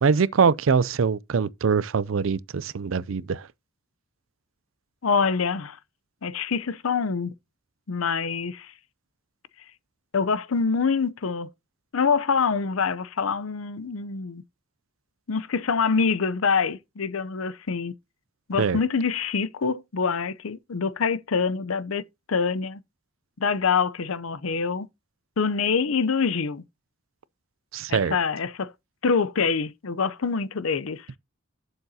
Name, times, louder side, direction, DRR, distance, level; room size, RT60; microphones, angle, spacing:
voice 1, 0.0-3.5 18.6-18.8 27.7-28.2, right 5 dB, 70° right, 0.5 m, -23 dB
voice 2, 5.0-5.8 6.2-7.3 7.9-8.7 10.1-11.5 11.9-14.4 15.3-17.9 18.5-22.8 23.4-24.9 25.4-26.6 27.9-28.7 29.0-31.1, left 5 dB, 80° left, 0.7 m, -25 dB
11.5 x 7.0 x 2.8 m
head